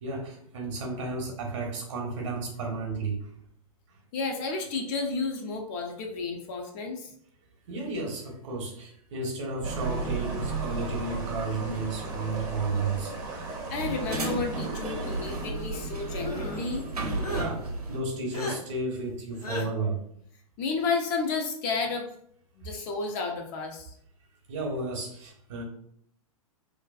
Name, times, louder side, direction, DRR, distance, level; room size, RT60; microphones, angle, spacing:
voice 1, 0.0-3.3 7.7-13.1 14.8-15.0 17.3-20.0 24.5-25.6, right 3 dB, 55° right, 1 dB, 0.8 m, -33 dB
voice 2, 4.1-7.1 13.7-16.9 20.6-22.1 22.6-23.9, left 4 dB, 35° left, 2 dB, 0.4 m, -31 dB
sound 1, 9.6-15.5, right 2 dB, 20° right, 0.6 m, -39 dB
sound 2, 9.6-18.0, right 3 dB, 85° right, 0.6 m, -34 dB
sound 3, 14.8-15.6 16.2-16.7 17.2-17.5 18.3-18.6 19.4-19.7, left 1 dB, 75° left, 0.6 m, -37 dB
2.5 x 2.2 x 2.3 m, 0.68 s
figure-of-eight pair, 110°, 19 cm